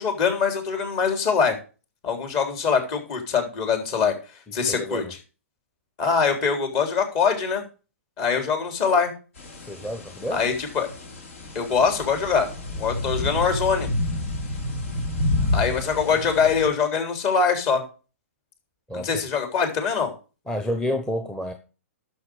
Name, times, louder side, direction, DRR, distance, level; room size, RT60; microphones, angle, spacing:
voice 1, 0.0-1.6 2.0-4.1 4.5-5.0 6.0-7.6 8.2-9.1 10.3-10.9 11.6-12.5 12.7-13.9 15.5-17.8 18.9-20.1, left 6 dB, 40° left, 3.6 m, -23 dB
voice 2, 4.5-5.1 9.6-10.5 15.8-16.2 18.9-19.1 20.5-21.5, equal, 10° left, 1.0 m, -30 dB
sound 1, 9.4-16.7, left 1 dB, 70° left, 3.7 m, -29 dB
11.5 x 6.7 x 4.9 m
hypercardioid pair, 125°, 8 cm